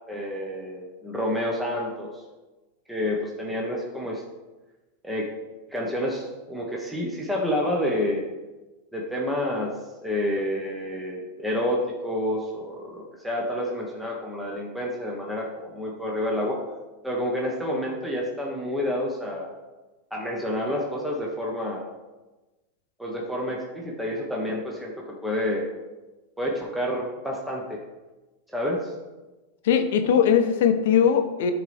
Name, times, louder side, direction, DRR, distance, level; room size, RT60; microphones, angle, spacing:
voice 1, 0.1-2.2 2.9-4.2 5.0-5.3 5.7-8.2 8.9-9.7 10.0-16.6 17.0-19.5 20.1-21.8 23.0-25.7 26.4-27.8 28.5-28.9, left 1 dB, 5° right, -2 dB, 1.0 m, -29 dB
voice 2, 29.6-31.5, left 8 dB, 75° left, 8 dB, 0.7 m, -20 dB
9.8 x 3.9 x 3.4 m, 1.2 s
supercardioid pair, 125°, 0 cm